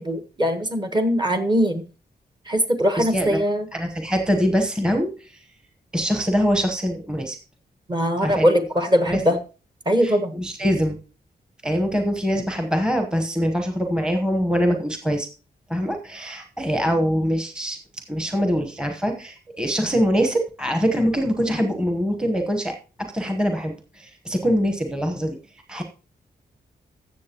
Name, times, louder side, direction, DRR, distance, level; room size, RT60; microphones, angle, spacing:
voice 1, 0.0-1.8 2.5-3.7 7.9-9.4 9.9-10.4, equal, 25° right, 7 dB, 1.2 m, -21 dB
voice 2, 3.0-3.4 3.7-5.1 5.9-7.4 8.2-8.5 9.0-9.2 10.0-11.0 11.6-15.3 15.7-17.8 18.1-22.7 23.0-25.4 25.7-25.8, equal, 5° right, 4 dB, 1.0 m, -23 dB
14.0 x 7.5 x 2.9 m, 0.35 s
wide cardioid pair, 160°, 17 cm